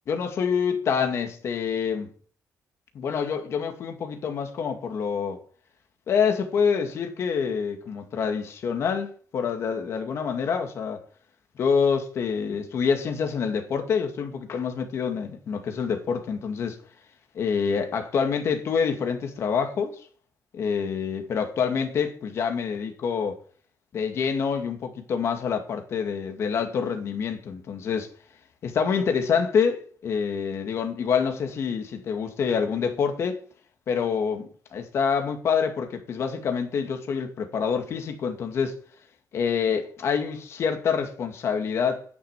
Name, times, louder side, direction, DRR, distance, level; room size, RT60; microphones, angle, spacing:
voice 1, 0.1-2.1 2.9-5.4 6.1-11.0 11.6-16.8 17.3-20.0 20.5-23.4 23.9-28.1 28.6-33.4 33.9-38.7 39.3-42.0, left 6 dB, 50° left, 2.2 m, -26 dB
10.0 x 6.7 x 8.9 m
cardioid pair, 175°, 6 cm